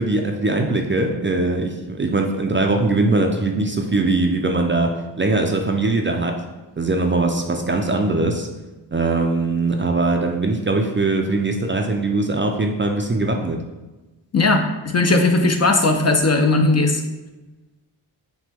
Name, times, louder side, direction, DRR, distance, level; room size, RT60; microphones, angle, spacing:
voice 1, 0.0-4.9 5.2-6.3 6.8-8.5 8.9-13.6, right 2 dB, 25° right, 3 dB, 0.4 m, -21 dB
voice 2, 14.3-17.0, left 2 dB, 35° left, 4 dB, 0.5 m, -17 dB
6.0 x 2.2 x 3.4 m, 1.1 s
cardioid pair, 65°, 45 cm